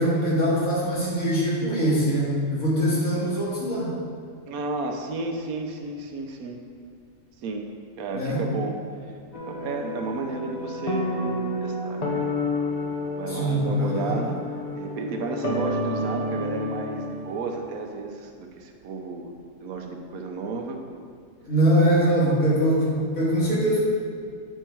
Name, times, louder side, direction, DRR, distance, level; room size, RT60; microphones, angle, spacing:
voice 1, 0.0-3.9 8.1-8.4 13.3-14.2 21.4-23.8, equal, 65° left, -8 dB, 2.5 m, -22 dB
voice 2, 4.5-6.6 7.4-7.7 8.0-8.8 9.3-12.2 13.2-14.4 14.7-19.3 19.6-20.8, right 3 dB, 80° right, 3 dB, 1.2 m, -32 dB
sound 1, 9.3-17.7, left 1 dB, 35° left, 0.7 m, -30 dB
9.0 x 4.6 x 4.5 m, 2.1 s
omnidirectional pair, 1.5 m